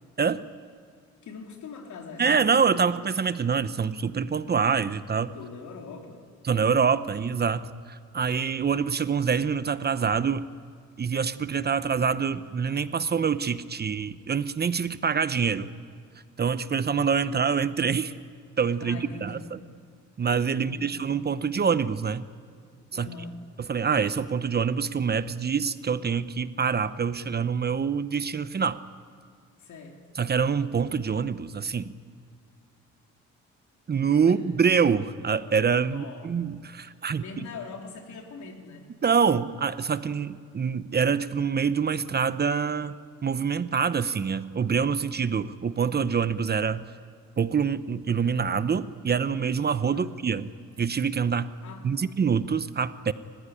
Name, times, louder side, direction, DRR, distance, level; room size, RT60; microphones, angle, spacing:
voice 1, 1.2-2.7 5.3-6.2 18.8-19.5 20.5-21.0 22.9-23.4 29.6-30.0 34.2-34.4 35.8-36.4 37.2-38.9 49.8-50.1 51.6-52.1, left 4 dB, 70° left, 2 dB, 3.9 m, -42 dB
voice 2, 2.2-5.3 6.4-10.5 11.0-15.7 16.4-18.1 18.6-19.4 20.2-22.2 22.9-23.1 23.6-28.8 30.2-31.9 33.9-37.2 39.0-46.8 47.4-50.5 50.8-51.5 51.8-53.1, right 6 dB, 35° right, 14 dB, 0.8 m, -25 dB
29.5 x 15.5 x 9.9 m, 2.1 s
cardioid pair, 90°, 30 cm